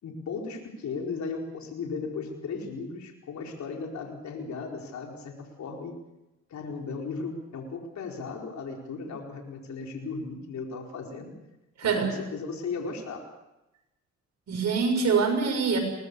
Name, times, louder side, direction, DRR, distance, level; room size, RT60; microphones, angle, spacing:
voice 1, 0.0-5.9 6.5-11.3 11.8-13.3, left 4 dB, 65° left, 1 dB, 4.7 m, -36 dB
voice 2, 11.8-12.1 14.5-15.8, right 5 dB, 60° right, 3 dB, 6.7 m, -24 dB
23.0 x 19.5 x 6.9 m, 0.96 s
cardioid pair, 90°, 30 cm